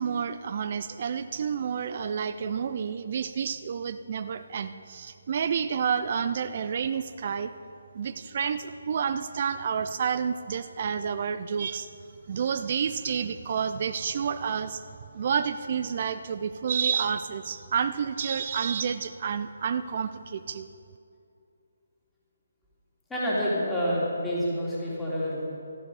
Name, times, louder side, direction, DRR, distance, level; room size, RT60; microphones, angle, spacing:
voice 1, 0.0-7.5 7.9-11.9 12.3-14.8 15.1-20.7, right 7 dB, 40° right, 11 dB, 0.4 m, -29 dB
voice 2, 23.1-25.5, equal, 5° left, -8 dB, 2.9 m, -28 dB
13.5 x 12.0 x 4.9 m, 2.5 s
figure-of-eight pair, 150°, 0 cm